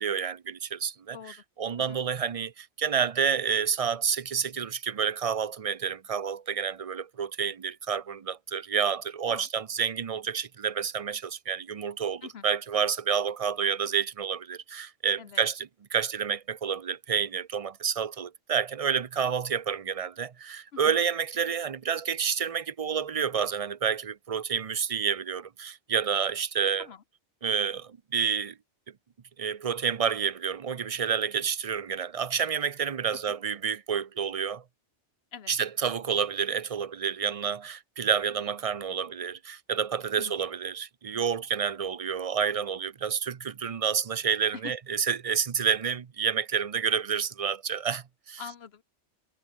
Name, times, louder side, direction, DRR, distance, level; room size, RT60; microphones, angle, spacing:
voice 1, 0.0-26.9 27.4-28.6 29.4-34.6 35.5-48.4, right 7 dB, 40° right, 0.5 m, -29 dB
voice 2, 48.4-48.8, left 7 dB, 60° left, 1.2 m, -43 dB
omnidirectional pair, 1.2 m